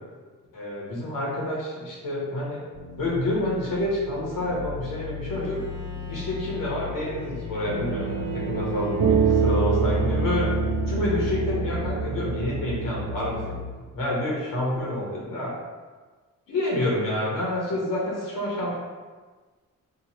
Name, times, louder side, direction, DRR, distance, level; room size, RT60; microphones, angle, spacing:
voice 1, 0.5-2.6 3.0-5.6 6.1-10.5 10.9-13.6 13.9-15.5 16.5-18.8, left 1 dB, 80° left, -4 dB, 1.0 m, -28 dB
sound 1, 2.7-13.7, left 7 dB, 50° left, 0.4 m, -37 dB
Bowed string instrument, 5.3-11.6, left 1 dB, 15° right, 0.8 m, -45 dB
sound 2, 7.7-13.4, right 5 dB, 65° right, 0.5 m, -25 dB
2.8 x 2.4 x 4.1 m, 1.4 s
cardioid pair, 75°, 33 cm